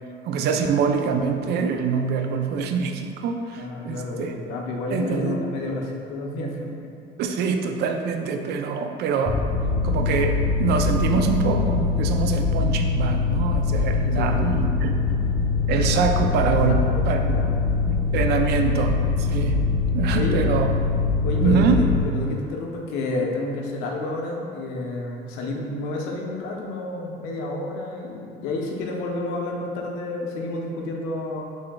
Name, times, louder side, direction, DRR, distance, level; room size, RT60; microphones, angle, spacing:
voice 1, 0.2-4.3 4.9-5.4 7.2-9.4 9.8-15.0 15.7-16.8 17.1-17.3 17.9-19.6 19.9-20.7 21.4-21.8, right 6 dB, 55° right, 4 dB, 0.4 m, -24 dB
voice 2, 3.6-6.9 14.2-14.4 16.7-17.0 17.3-17.7 20.1-20.4 21.2-21.9 22.1-31.4, left 2 dB, 85° left, 0 dB, 0.7 m, -30 dB
Mechanical fan, 9.3-22.0, left 4 dB, 25° left, 0.5 m, -23 dB
6.2 x 3.2 x 2.3 m, 2.6 s
cardioid pair, 130°, 20 cm